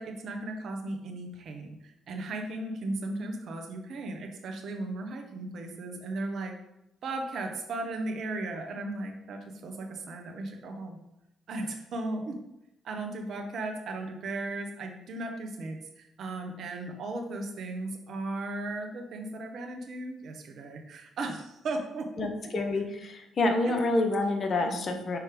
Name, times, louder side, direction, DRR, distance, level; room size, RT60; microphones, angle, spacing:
voice 1, 0.0-6.5 7.0-11.0 11.5-12.4 12.8-22.8 23.6-23.7 24.4-25.0, right 2 dB, 60° right, 4 dB, 1.0 m, -36 dB
voice 2, 22.2-25.2, left 2 dB, 50° left, 5 dB, 1.0 m, -28 dB
5.9 x 3.2 x 5.0 m, 0.85 s
hypercardioid pair, 45°, 0 cm